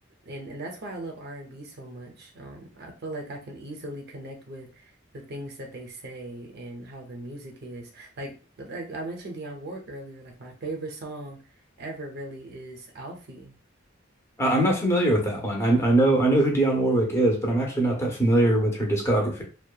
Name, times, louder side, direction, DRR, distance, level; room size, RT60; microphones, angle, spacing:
voice 1, 0.2-11.4 11.8-13.5, right 2 dB, 55° right, 2 dB, 0.6 m, -39 dB
voice 2, 14.4-19.4, right 1 dB, 15° left, 0 dB, 0.7 m, -22 dB
2.7 x 2.2 x 2.2 m, 0.35 s
head